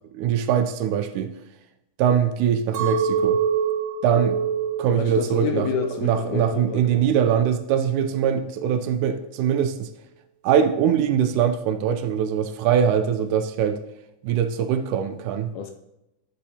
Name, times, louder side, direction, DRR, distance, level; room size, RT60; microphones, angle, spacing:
voice 1, 0.1-1.3 2.0-3.4 4.0-4.4 4.8-5.7 6.0-9.9 10.4-13.8 14.2-15.5, right 8 dB, 80° right, 2.0 m, -22 dB
Chink clink, 2.7-7.0 7.5-8.1, right 6 dB, 65° right, 2.1 m, -27 dB
voice 2, 4.9-7.1 15.5-15.7, left 7 dB, 80° left, 1.8 m, -29 dB
9.9 x 6.6 x 2.8 m
omnidirectional pair, 3.7 m